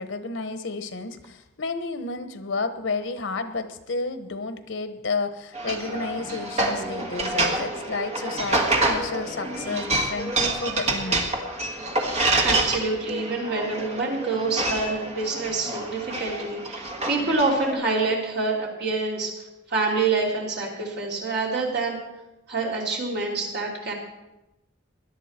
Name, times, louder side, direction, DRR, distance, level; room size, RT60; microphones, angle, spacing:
voice 1, 0.0-11.3, left 3 dB, 80° left, 10 dB, 1.1 m, -31 dB
sound 1, 5.5-17.7, right 2 dB, 35° right, 1.5 m, -27 dB
voice 2, 12.4-19.3 19.7-22.0 22.5-23.9, right 3 dB, 55° right, -2 dB, 3.3 m, -26 dB
17.5 x 11.5 x 4.4 m, 0.96 s
head